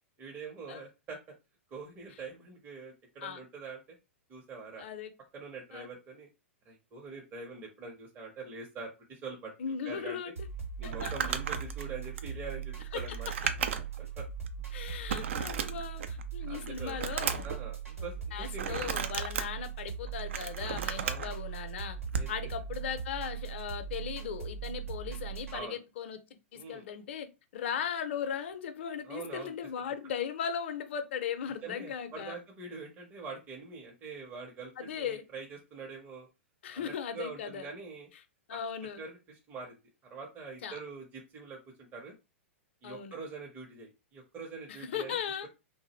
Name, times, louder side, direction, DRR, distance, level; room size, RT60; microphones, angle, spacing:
voice 1, 0.2-1.4 1.7-4.0 4.3-4.9 5.3-6.3 6.7-9.5 9.8-10.2 10.8-13.3 14.2-14.3 16.5-17.0 17.4-18.9 21.0-21.3 22.1-22.3 25.5-25.8 26.5-26.8 29.0-29.5 31.6-36.3 36.7-38.1 38.5-38.6 39.0-39.8 40.0-42.1 42.8-45.2, right 4 dB, 25° right, 0.7 m, -44 dB
voice 2, 4.8-5.1 5.7-5.9 9.6-10.3 10.8-11.1 12.9-13.0 14.7-17.6 18.3-22.0 22.3-26.2 26.7-27.3 27.5-32.4 34.8-35.2 36.6-37.7 38.5-39.0 40.6-40.8 42.8-43.2 44.7-45.5, left 8 dB, 55° left, 0.5 m, -37 dB
sound 1, 10.4-25.6, right 7 dB, 85° right, 0.9 m, -40 dB
Crumpling crinkling, 10.9-14.1 14.5-14.6 15.1-16.2 16.6-17.6 18.6-19.4 20.1-21.3 22.1-22.3, right 7 dB, 65° right, 0.4 m, -34 dB
2.4 x 2.0 x 2.9 m
figure-of-eight pair, 105°, 7 cm